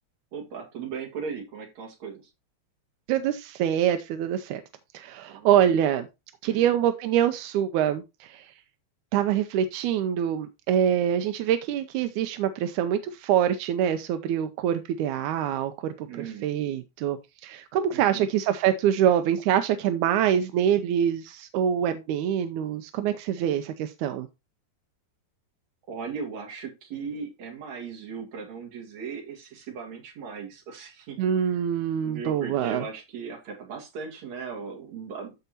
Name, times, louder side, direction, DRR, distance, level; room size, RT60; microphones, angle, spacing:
voice 1, 0.3-2.2 5.3-5.6 6.4-6.7 16.1-16.5 17.9-18.3 25.9-31.2 32.0-35.4, right 5 dB, 65° right, 1 dB, 3.2 m, -37 dB
voice 2, 3.1-4.6 4.9-6.1 6.4-8.5 9.1-24.3 31.2-32.9, right 9 dB, 90° right, 9 dB, 2.1 m, -25 dB
13.5 x 4.6 x 2.8 m, 0.24 s
omnidirectional pair, 3.4 m